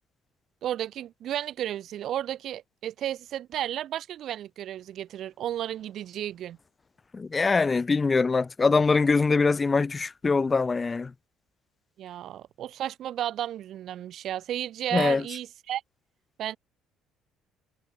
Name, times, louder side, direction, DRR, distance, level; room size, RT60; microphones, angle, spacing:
voice 1, 0.6-6.6 12.0-15.8 16.4-16.6, right 11 dB, 60° right, 3.7 m, -33 dB
voice 2, 7.1-11.1 14.9-15.2, left 4 dB, 30° left, 0.5 m, -23 dB
hypercardioid pair, 50°, 0 cm